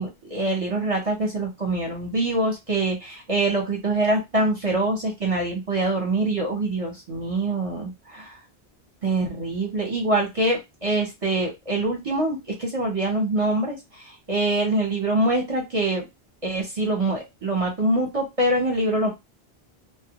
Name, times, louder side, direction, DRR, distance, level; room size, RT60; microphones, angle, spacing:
voice 1, 0.0-8.4 9.0-13.8 14.3-16.1 16.4-19.1, right 2 dB, 40° right, -1 dB, 0.7 m, -24 dB
2.1 x 2.1 x 2.8 m, 0.21 s
omnidirectional pair, 1.0 m